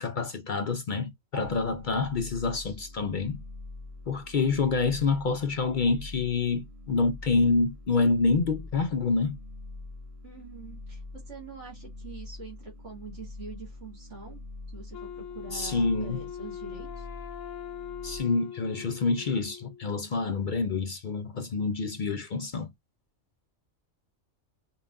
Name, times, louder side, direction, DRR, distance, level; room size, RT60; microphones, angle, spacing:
voice 1, 0.0-3.4 4.1-9.4 15.5-16.2 18.0-22.7, left 4 dB, 60° left, 0.5 m, -27 dB
sound 1, 1.4-18.2, left 2 dB, 30° right, 1.0 m, -44 dB
voice 2, 10.2-14.4 14.7-17.1, right 4 dB, 60° right, 2.2 m, -45 dB
Wind instrument woodwind instrument, 14.9-19.9, left 9 dB, 80° left, 1.0 m, -41 dB
5.3 x 2.4 x 2.5 m
omnidirectional pair, 1.4 m